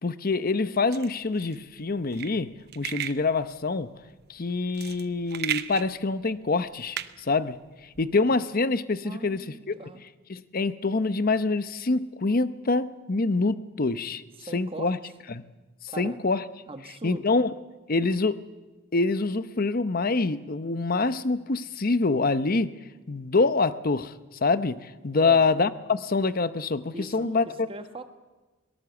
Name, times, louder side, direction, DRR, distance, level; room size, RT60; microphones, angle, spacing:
voice 1, 0.0-3.9 4.3-7.6 8.0-9.7 10.3-14.2 14.5-15.0 15.3-15.4 15.8-16.4 17.0-17.5 17.9-18.5 18.9-22.7 23.1-24.1 24.4-27.7, left 3 dB, 45° left, 14 dB, 0.8 m, -25 dB
sound 1, 0.9-8.1, right 11 dB, 50° right, 0.8 m, -37 dB
voice 2, 9.0-10.0 14.4-14.9 15.9-16.2 16.7-17.3 25.1-25.4 26.9-28.0, right 2 dB, 25° right, 8 dB, 1.3 m, -40 dB
22.5 x 18.5 x 7.1 m, 1.2 s
head